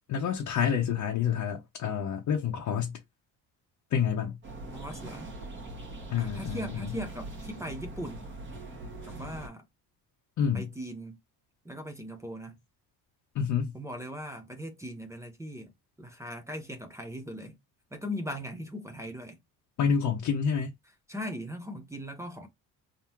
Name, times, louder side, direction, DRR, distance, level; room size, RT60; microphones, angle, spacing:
voice 1, 0.1-3.0 3.9-4.4 6.1-6.9 10.4-10.7 13.3-13.7 19.8-20.7, left 7 dB, 50° left, 0.9 m, -28 dB
sound 1, 4.4-9.5, right 2 dB, 30° right, 1.3 m, -42 dB
voice 2, 4.7-5.3 6.2-8.4 9.0-9.7 10.5-11.2 11.6-12.6 13.7-15.7 16.0-17.6 17.9-19.4 21.1-22.5, equal, 5° right, 0.6 m, -39 dB
3.7 x 2.8 x 2.9 m
cardioid pair, 145°, 39 cm